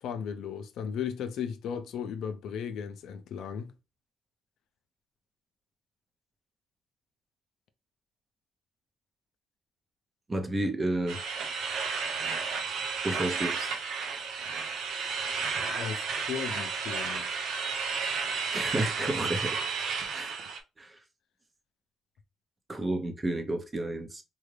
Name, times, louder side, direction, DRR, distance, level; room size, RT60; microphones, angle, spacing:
voice 1, 0.0-3.7 15.7-17.3 19.0-19.1, left 7 dB, 80° left, 0.4 m, -36 dB
voice 2, 10.3-11.2 13.0-13.8 18.5-19.6 20.1-20.4 20.8-21.0 22.7-24.2, right 1 dB, 25° right, 0.7 m, -31 dB
sound 1, 11.1-20.6, right 5 dB, 80° right, 0.7 m, -32 dB
3.7 x 2.2 x 3.2 m
cardioid pair, 90°, 0 cm